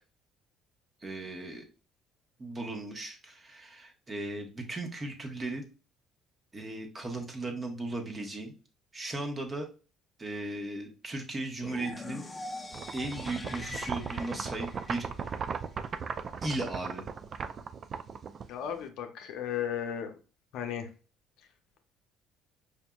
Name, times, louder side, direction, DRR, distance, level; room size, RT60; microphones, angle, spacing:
voice 1, 1.0-1.6 2.4-5.6 6.5-8.5 8.9-9.7 10.2-12.2 12.9-15.1 16.4-17.0, right 2 dB, 30° right, 3 dB, 1.1 m, -36 dB
sound 1, 11.6-15.6, left 2 dB, 25° left, 0.6 m, -43 dB
sound 2, 12.7-18.8, right 6 dB, 45° right, 0.3 m, -37 dB
voice 2, 18.5-20.1 20.5-20.9, left 9 dB, 75° left, 5 dB, 0.7 m, -35 dB
5.1 x 2.6 x 2.3 m, 0.34 s
supercardioid pair, 75°, 0 cm